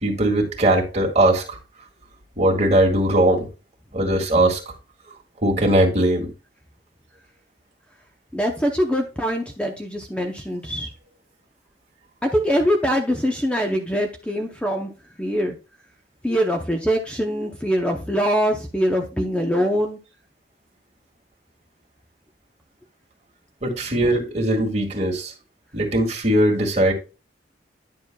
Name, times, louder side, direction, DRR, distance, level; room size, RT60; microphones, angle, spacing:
voice 1, 0.0-1.6 2.4-3.5 3.9-4.7 5.4-6.3 23.6-25.3 25.7-26.9, right 1 dB, 40° right, 0 dB, 2.0 m, -20 dB
voice 2, 8.3-10.9 12.2-14.9 15.2-15.6 16.2-20.0, equal, 5° left, 2 dB, 0.7 m, -23 dB
10.0 x 6.9 x 2.3 m, 0.31 s
head